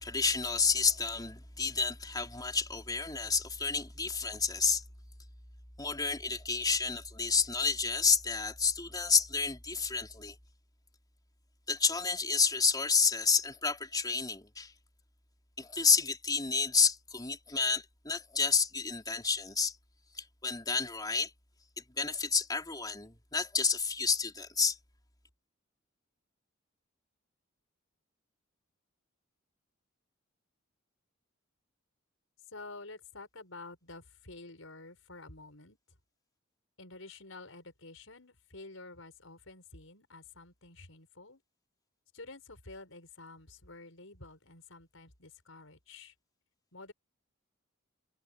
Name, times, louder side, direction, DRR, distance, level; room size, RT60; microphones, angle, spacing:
voice 1, 0.0-4.8 5.8-10.3 11.7-14.7 15.6-19.7 20.2-21.3 22.0-24.8, left 5 dB, 20° left, 4.0 m, -30 dB
voice 2, 32.5-35.8 36.8-41.4 42.1-46.1 46.7-46.9, left 3 dB, 70° left, 6.6 m, -50 dB
head